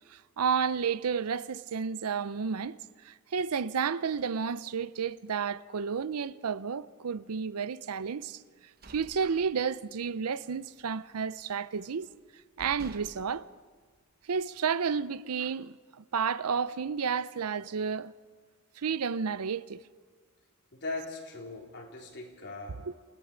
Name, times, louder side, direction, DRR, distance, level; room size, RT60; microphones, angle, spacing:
voice 1, 0.1-2.8 3.0-8.4 8.9-12.1 12.6-13.5 14.3-18.1 18.8-19.8 22.9-23.0, right 6 dB, 85° right, 0.6 m, -31 dB
sound 1, 8.5-10.1 10.4-10.7 11.0-11.8 12.2-12.3 12.6-14.4, right 2 dB, 45° right, 1.0 m, -51 dB
voice 2, 20.7-22.8, left 3 dB, 55° left, 3.9 m, -39 dB
28.5 x 18.0 x 5.1 m
head